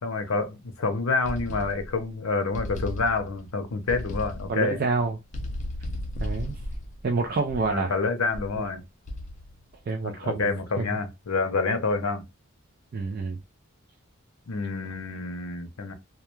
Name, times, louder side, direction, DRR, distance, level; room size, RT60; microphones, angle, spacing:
voice 1, 0.0-4.8 7.7-8.8 10.0-12.3 14.5-15.9, left 3 dB, 90° left, 0.6 m, -28 dB
sound 1, 1.2-2.1 2.5-3.5 3.9-4.7 5.3-7.8 8.3-8.7 9.1-9.6, left 1 dB, 35° left, 0.4 m, -35 dB
voice 2, 4.5-5.2 6.2-6.6 7.0-7.9 8.6-8.7 9.9-10.5 10.8-10.9 12.9-13.4, right 3 dB, 45° right, 0.3 m, -27 dB
2.3 x 2.2 x 3.0 m
head